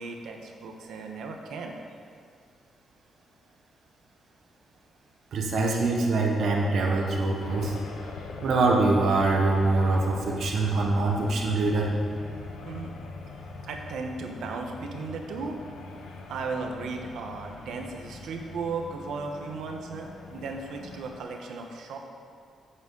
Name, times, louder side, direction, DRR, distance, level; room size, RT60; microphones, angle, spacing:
voice 1, 0.0-1.8 12.6-12.9 13.7-15.6 16.3-22.0, right 4 dB, 85° right, 3 dB, 1.3 m, -36 dB
voice 2, 5.3-7.7 8.4-11.9, right 3 dB, 60° right, 0 dB, 1.3 m, -24 dB
sound 1, 7.4-21.2, left 3 dB, 85° left, 1.0 m, -42 dB
14.0 x 8.0 x 4.0 m, 2.2 s
wide cardioid pair, 155°, 0 cm